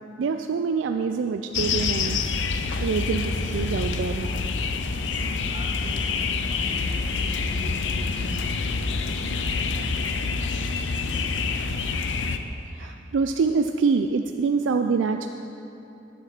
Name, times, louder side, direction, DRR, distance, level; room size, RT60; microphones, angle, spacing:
voice 1, 0.2-4.4 12.7-15.3, right 5 dB, 90° right, 6 dB, 0.4 m, -26 dB
sound 1, 1.5-12.4, left 4 dB, 80° left, 0.6 m, -27 dB
voice 2, 5.1-11.2 11.7-11.9 12.2-12.3, equal, 25° right, -2 dB, 1.4 m, -43 dB
10.5 x 7.3 x 6.0 m, 2.9 s
head